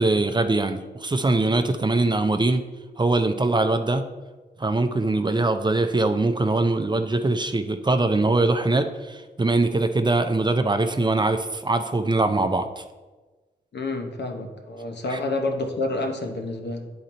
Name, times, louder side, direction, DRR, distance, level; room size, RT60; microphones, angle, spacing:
voice 1, 0.0-2.6 3.0-4.0 4.6-12.8 15.1-15.2, right 2 dB, 25° right, 8 dB, 0.5 m, -22 dB
voice 2, 13.7-16.9, left 2 dB, 75° left, 4 dB, 1.0 m, -29 dB
9.1 x 3.9 x 4.3 m, 1.3 s
cardioid pair, 70°, 18 cm